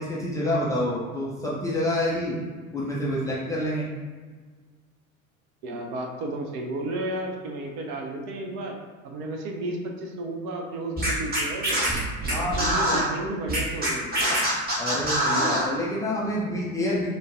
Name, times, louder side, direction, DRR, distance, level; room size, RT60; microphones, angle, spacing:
voice 1, 0.0-2.4 2.7-3.9 12.3-13.0 14.8-17.1, left 1 dB, 10° left, -7 dB, 0.4 m, -28 dB
voice 2, 5.6-8.8 9.0-11.8 12.2-14.2, right 2 dB, 40° right, 2 dB, 0.6 m, -33 dB
Scratching (performance technique), 11.0-13.0 13.5-15.7, right 1 dB, 20° right, 1.2 m, -24 dB
6.2 x 2.2 x 2.5 m, 1.5 s
figure-of-eight pair, 70°, 42 cm